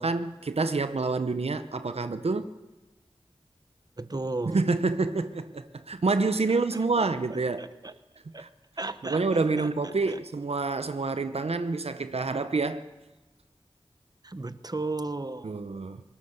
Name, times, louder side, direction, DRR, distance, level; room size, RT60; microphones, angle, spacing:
voice 1, 0.0-2.5 4.5-7.6 8.4-8.5 9.0-12.8 15.4-16.0, right 3 dB, 80° right, 0.8 m, -27 dB
voice 2, 4.0-4.6 7.0-7.1 7.6-7.9 8.3-8.4 8.8-10.2 14.2-15.6, right 2 dB, 40° right, 1.0 m, -35 dB
21.0 x 19.0 x 6.8 m
wide cardioid pair, 45°, 10 cm